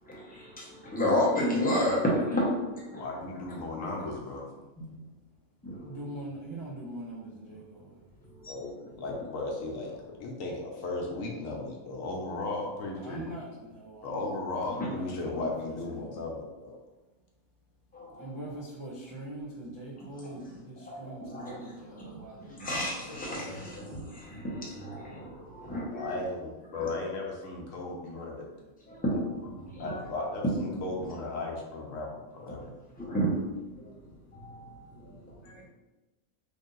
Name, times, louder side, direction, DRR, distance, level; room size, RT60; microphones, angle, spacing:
voice 1, 0.0-3.1 4.8-4.9 5.6-6.0 8.3-8.5 14.8-14.9 17.9-18.3 20.0-20.3 21.0-21.6 21.9-22.2 22.5-26.1 26.8-26.9 28.9-30.0 33.0-33.4 33.7-33.9 34.3-35.3, equal, 10° left, -5 dB, 0.8 m, -32 dB
voice 2, 2.9-4.5 8.5-8.7 9.0-13.3 14.0-16.8 25.9-28.5 29.8-32.7 35.4-35.6, left 2 dB, 75° left, 0 dB, 1.1 m, -36 dB
voice 3, 5.8-7.9 13.0-14.2 14.7-16.2 18.2-22.6, right 1 dB, 30° right, -6 dB, 0.3 m, -42 dB
3.5 x 2.7 x 3.8 m, 1.1 s
omnidirectional pair, 1.4 m